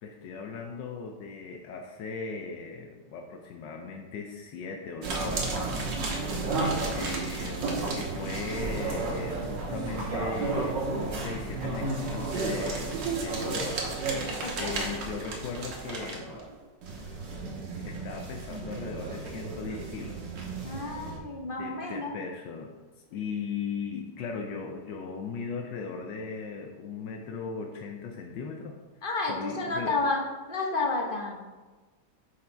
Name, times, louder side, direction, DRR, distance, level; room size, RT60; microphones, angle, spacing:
voice 1, 0.0-5.7 6.1-13.8 14.2-16.4 17.4-20.2 21.6-22.7 23.1-28.8 29.3-30.0, left 5 dB, 80° left, 3 dB, 1.2 m, -38 dB
sound 1, 5.0-16.5 16.8-21.2, right 3 dB, 80° right, 1.8 m, -32 dB
voice 2, 14.4-14.7 20.6-22.1 29.0-30.2 30.5-31.4, left 3 dB, 40° left, 0 dB, 0.8 m, -30 dB
6.1 x 4.9 x 4.4 m, 1.3 s
omnidirectional pair, 2.0 m